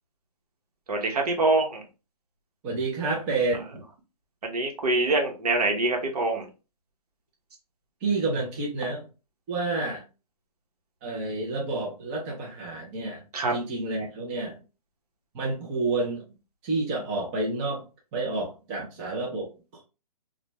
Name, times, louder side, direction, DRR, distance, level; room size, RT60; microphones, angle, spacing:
voice 1, 0.9-1.8 4.4-6.5 13.3-13.5, right 2 dB, 75° right, 2 dB, 1.0 m, -25 dB
voice 2, 2.6-3.8 8.0-9.1 9.5-10.0 11.0-13.2 13.5-14.6 15.3-16.3 16.6-17.8 18.1-19.5, right 3 dB, 20° right, -2 dB, 0.5 m, -29 dB
2.5 x 2.2 x 2.9 m, 0.31 s
hypercardioid pair, 155°, 20 cm